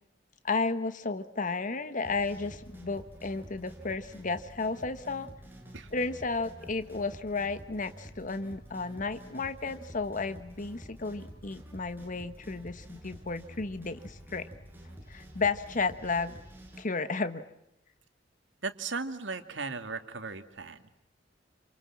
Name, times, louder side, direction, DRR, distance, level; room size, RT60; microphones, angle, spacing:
voice 1, 0.4-5.3 5.9-14.5 15.1-16.4 16.8-17.4, left 4 dB, 45° left, 11 dB, 1.2 m, -33 dB
sound 1, 2.0-16.8, equal, 10° right, 6.8 m, -49 dB
voice 2, 18.6-20.8, right 4 dB, 80° right, 8 dB, 2.4 m, -37 dB
28.5 x 27.5 x 7.4 m, 0.81 s
head